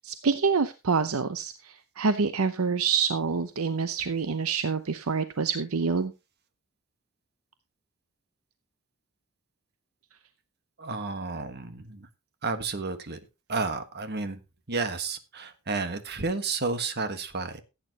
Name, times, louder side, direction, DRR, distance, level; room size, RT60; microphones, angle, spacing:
voice 1, 0.0-6.1, right 5 dB, 70° right, 11 dB, 0.7 m, -27 dB
voice 2, 10.8-12.1 12.4-13.2 13.5-14.4 14.7-17.6, right 4 dB, 50° right, 9 dB, 1.4 m, -31 dB
15.5 x 8.9 x 2.9 m, 0.27 s
head